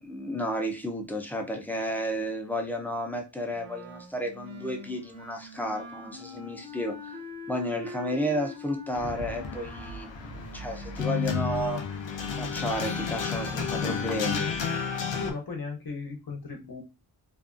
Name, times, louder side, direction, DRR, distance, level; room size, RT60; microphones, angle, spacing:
voice 1, 0.0-7.2 7.5-11.8 12.3-14.6, equal, 5° left, 0.5 m, -32 dB
Wind instrument woodwind instrument, 3.5-11.8, left 2 dB, 55° right, 0.9 m, -44 dB
sound 1, 8.9-15.3, left 6 dB, 90° left, 0.6 m, -31 dB
voice 2, 14.8-16.8, left 4 dB, 55° left, 0.8 m, -38 dB
2.6 x 2.3 x 2.4 m
wide cardioid pair, 100°, 43 cm